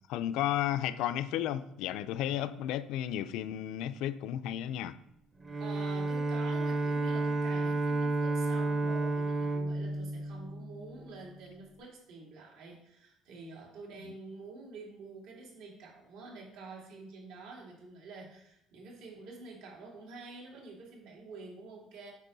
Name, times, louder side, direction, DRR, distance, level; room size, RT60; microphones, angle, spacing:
voice 1, 0.1-5.0 14.0-14.1, left 11 dB, 70° left, 0.4 m, -33 dB
Bowed string instrument, 5.4-11.1, right 2 dB, 20° right, 0.6 m, -31 dB
voice 2, 5.6-22.1, right 3 dB, 80° right, 2.7 m, -48 dB
8.2 x 5.6 x 4.0 m
cardioid pair, 170°, 0 cm